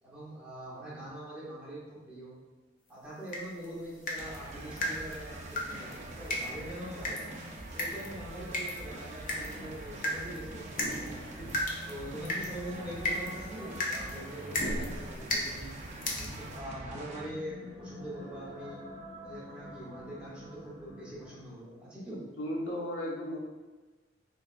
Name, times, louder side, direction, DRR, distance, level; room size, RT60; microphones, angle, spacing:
voice 1, 0.0-2.4 2.9-7.3 7.7-11.3 11.8-15.8 16.1-18.9 19.2-22.2, right 1 dB, 5° right, -8 dB, 1.0 m, -43 dB
sound 1, 3.3-16.6, left 1 dB, 45° left, 0.6 m, -37 dB
sound 2, 4.2-17.3, right 2 dB, 40° right, 0.4 m, -44 dB
sound 3, 11.8-21.6, left 1 dB, 15° left, 1.4 m, -49 dB
voice 2, 22.1-23.4, equal, 85° left, -2 dB, 0.8 m, -35 dB
3.5 x 3.2 x 2.4 m, 1.2 s
head